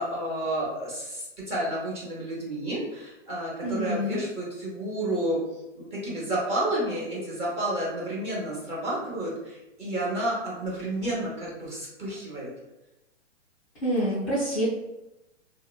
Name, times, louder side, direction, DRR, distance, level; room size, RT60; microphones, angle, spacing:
voice 1, 0.0-5.4 5.8-12.5, right 1 dB, 15° right, -5 dB, 0.7 m, -31 dB
voice 2, 3.6-4.2 13.8-14.6, equal, 10° left, -13 dB, 0.3 m, -27 dB
2.7 x 2.0 x 2.2 m, 0.95 s
hypercardioid pair, 135°, 37 cm